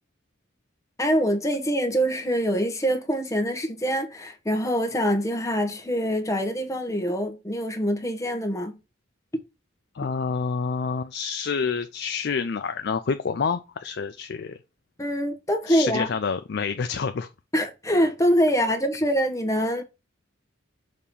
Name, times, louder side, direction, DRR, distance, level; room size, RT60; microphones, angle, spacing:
voice 1, 1.0-8.8 15.0-16.1 17.5-19.8, equal, 15° left, 1.0 m, -24 dB
voice 2, 9.9-14.6 15.7-17.3, left 5 dB, 55° left, 0.4 m, -28 dB
6.6 x 2.9 x 5.3 m
head